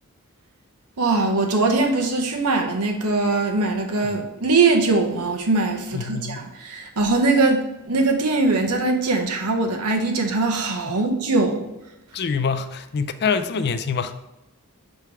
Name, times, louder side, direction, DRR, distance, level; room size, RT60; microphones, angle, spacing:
voice 1, 1.0-11.7, right 3 dB, 80° right, 1.0 m, -21 dB
voice 2, 5.9-6.5 10.9-11.0 12.1-14.2, left 5 dB, 50° left, 0.4 m, -25 dB
7.0 x 3.4 x 4.6 m
head